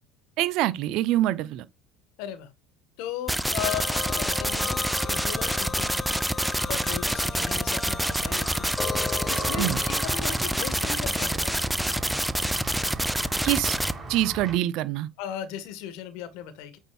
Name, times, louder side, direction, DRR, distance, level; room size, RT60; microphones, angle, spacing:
voice 1, 0.4-1.7 9.6-9.8 13.4-13.8 14.1-15.1, right 14 dB, 60° right, 0.7 m, -25 dB
voice 2, 2.2-2.5 3.0-4.8 5.0-6.1 6.7-11.8 15.2-16.8, left 10 dB, 65° left, 1.6 m, -37 dB
sound 1, 3.3-13.9, right 1 dB, 5° right, 0.6 m, -27 dB
sound 2, 3.6-10.4, left 5 dB, 25° left, 1.3 m, -36 dB
Walk footsteps / Bell, 7.9-14.6, right 2 dB, 30° right, 3.6 m, -38 dB
8.9 x 6.3 x 2.4 m
hypercardioid pair, 70°, 0 cm